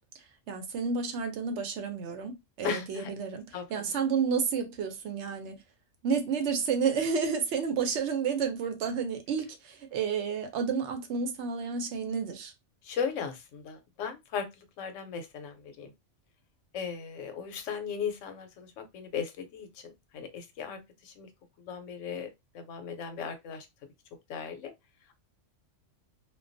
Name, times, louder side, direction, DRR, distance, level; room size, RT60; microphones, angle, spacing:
voice 1, 0.5-5.6 6.0-12.5, right 6 dB, 70° right, 0.8 m, -31 dB
voice 2, 2.6-3.1 3.5-3.6 12.8-15.9 16.7-21.3 21.6-22.3 22.5-23.7 24.3-24.7, left 6 dB, 80° left, 0.9 m, -37 dB
2.2 x 2.2 x 2.5 m
omnidirectional pair, 1.3 m